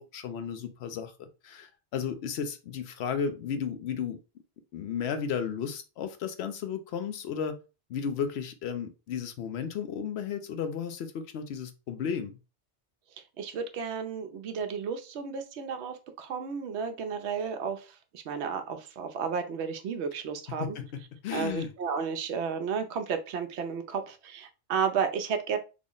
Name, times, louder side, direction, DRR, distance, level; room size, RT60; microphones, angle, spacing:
voice 1, 0.0-4.2 4.7-7.6 7.9-12.4 20.5-21.7, left 7 dB, 75° left, 0.8 m, -34 dB
voice 2, 13.4-20.8 21.3-25.6, right 6 dB, 80° right, 0.9 m, -33 dB
3.4 x 2.0 x 3.7 m
omnidirectional pair, 1.1 m